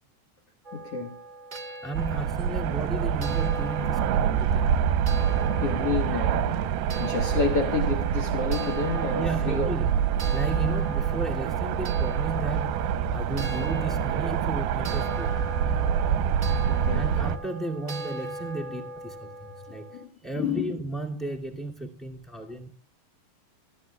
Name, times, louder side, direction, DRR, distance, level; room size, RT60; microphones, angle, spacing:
sound 1, 0.6-20.0, right 2 dB, 45° right, 0.6 m, -40 dB
voice 1, 0.7-1.2 4.6-4.7 5.6-6.6 7.0-9.7 10.6-10.7 16.7-17.1 19.7-20.1 20.4-20.8, left 5 dB, 75° left, 1.3 m, -30 dB
voice 2, 1.8-4.8 8.8-15.5 16.9-22.7, right 2 dB, ahead, 0.7 m, -34 dB
sound 2, 1.9-17.4, right 8 dB, 75° right, 2.5 m, -26 dB
21.5 x 13.0 x 2.3 m
omnidirectional pair, 5.0 m